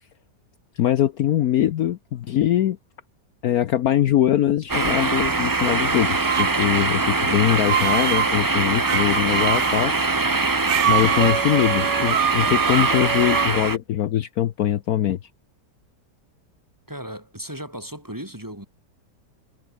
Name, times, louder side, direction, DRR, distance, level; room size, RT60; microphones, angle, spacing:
voice 1, 0.8-2.8 3.4-9.9 10.9-15.2, left 11 dB, 65° left, 1.1 m, -22 dB
sound 1, 4.7-13.8, right 3 dB, 25° right, 0.4 m, -23 dB
sound 2, 5.9-6.5 7.4-8.3 8.9-9.9 10.7-13.5, right 10 dB, 55° right, 0.8 m, -25 dB
voice 2, 16.9-18.7, equal, 10° right, 3.6 m, -36 dB
omnidirectional pair, 1.9 m